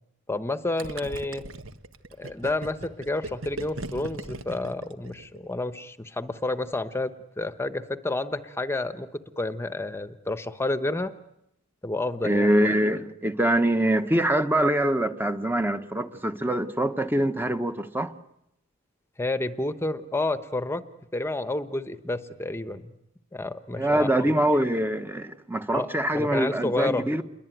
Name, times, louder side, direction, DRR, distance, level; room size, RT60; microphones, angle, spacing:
voice 1, 0.3-1.4 2.2-7.1 7.4-11.1 11.8-12.7 19.2-20.8 21.1-22.9 23.3-24.3 25.7-27.1, left 2 dB, 10° left, 1.0 m, -30 dB
Gurgling, 0.8-5.5, right 2 dB, 70° right, 1.4 m, -38 dB
voice 2, 12.2-18.1 23.8-27.2, right 1 dB, 10° right, 1.1 m, -24 dB
28.5 x 22.5 x 9.2 m
head